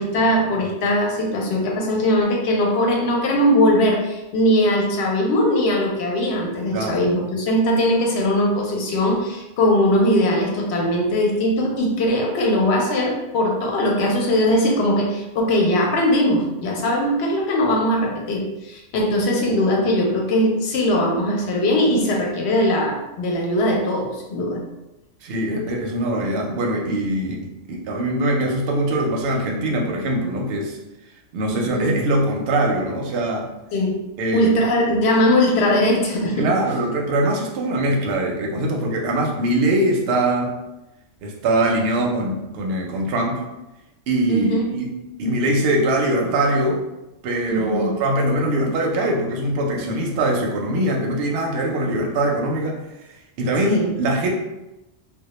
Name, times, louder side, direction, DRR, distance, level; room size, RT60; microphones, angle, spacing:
voice 1, 0.0-24.6 31.5-31.9 33.7-33.9 34.3-36.6 44.3-44.7 47.5-48.0 53.6-53.9, left 1 dB, 65° left, 0 dB, 0.8 m, -20 dB
voice 2, 6.7-7.1 25.2-30.8 31.3-33.5 34.2-34.5 36.4-40.5 41.2-43.4 44.1-44.9 45.2-46.8 47.2-52.8 53.4-54.3, right 1 dB, 65° right, 0 dB, 0.7 m, -22 dB
2.1 x 2.1 x 2.9 m, 0.97 s
omnidirectional pair, 1.3 m